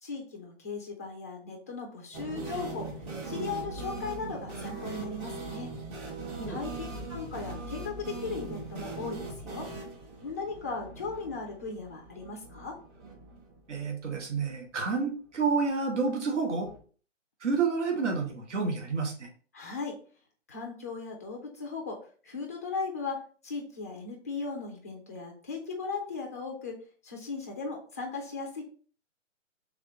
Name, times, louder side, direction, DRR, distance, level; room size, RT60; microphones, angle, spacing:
voice 1, 0.0-2.9 3.2-5.7 6.5-9.7 10.2-12.8 19.5-20.0 20.5-26.8 27.0-28.6, left 4 dB, 15° left, 1 dB, 0.4 m, -37 dB
sound 1, 2.1-13.9 14.1-14.2 14.5-14.6 16.6-16.8, right 3 dB, 25° right, 1.6 m, -40 dB
voice 2, 13.7-16.7 17.4-19.3, right 4 dB, 70° right, 1 dB, 1.4 m, -29 dB
3.5 x 3.5 x 3.8 m, 0.42 s
hypercardioid pair, 145°, 37 cm